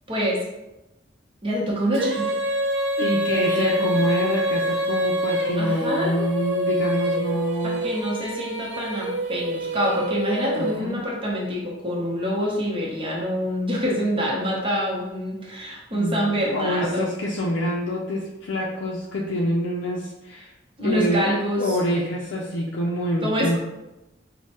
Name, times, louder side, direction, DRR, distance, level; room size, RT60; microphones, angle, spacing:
voice 1, 0.1-0.4 1.4-2.3 3.3-3.8 5.6-6.2 7.6-17.1 20.8-21.8 23.2-23.6, equal, 30° right, -3 dB, 0.8 m, -26 dB
Female singing, 1.9-11.1, equal, 70° right, 0.6 m, -26 dB
voice 2, 3.0-7.9 10.6-11.1 15.9-20.5 20.8-21.3 21.6-23.6, equal, 70° left, -3 dB, 0.4 m, -26 dB
4.3 x 2.1 x 2.9 m, 0.98 s
head